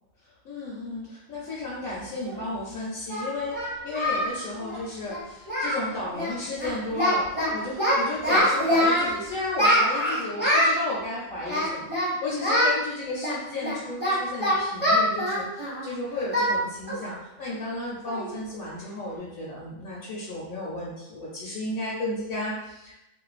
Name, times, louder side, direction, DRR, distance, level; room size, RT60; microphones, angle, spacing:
voice 1, 0.4-23.0, left 2 dB, 80° left, -6 dB, 1.0 m, -33 dB
Singing, 2.3-2.4 3.1-4.3 4.6-4.8 5.1-5.2 5.5-5.8 6.1-6.3 6.6-7.5 7.8-9.1 9.6-10.8 11.4-12.1 12.4-12.7 13.2-15.9 16.3-16.5 16.9-17.1 17.5-17.6 18.1-18.3, equal, 10° left, 0.8 m, -24 dB
2.5 x 2.2 x 2.3 m, 0.93 s
omnidirectional pair, 1.4 m